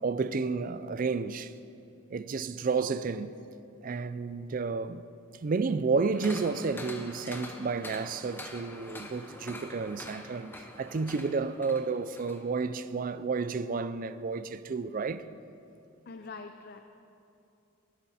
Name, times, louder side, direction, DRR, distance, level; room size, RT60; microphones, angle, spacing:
voice 1, 0.0-1.5 2.1-3.4 3.8-5.0 5.4-15.3, right 4 dB, 40° right, 0.4 m, -31 dB
sound 1, 6.1-12.4 12.8-12.9, left 2 dB, 10° left, 0.9 m, -45 dB
voice 2, 16.1-16.8, left 4 dB, 50° left, 0.5 m, -43 dB
17.0 x 12.0 x 4.2 m
head